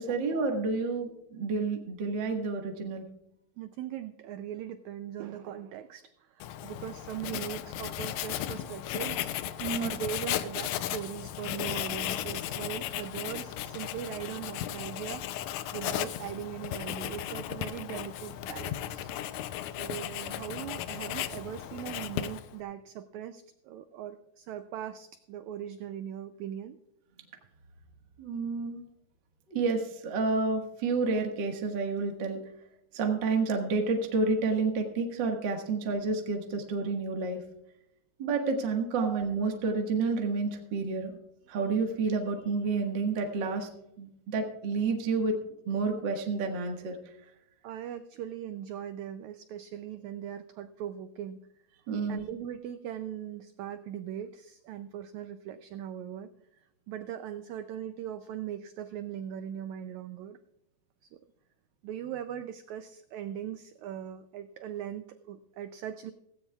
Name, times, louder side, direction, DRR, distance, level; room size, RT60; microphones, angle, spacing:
voice 1, 0.0-3.0 9.6-9.9 28.2-28.8 29.5-32.4 32.9-37.4 38.2-41.2 41.5-43.7 44.0-45.4 45.7-47.0 51.9-52.2, right 4 dB, 45° right, 3 dB, 1.7 m, -29 dB
voice 2, 3.6-9.3 9.6-19.1 19.8-26.8 39.0-39.2 47.6-51.4 52.1-60.4 61.0-61.2 61.8-66.1, right 10 dB, 90° right, 10 dB, 1.6 m, -40 dB
Writing, 6.4-22.6, left 12 dB, 80° left, 1.8 m, -35 dB
16.5 x 16.0 x 2.3 m, 0.81 s
omnidirectional pair, 4.0 m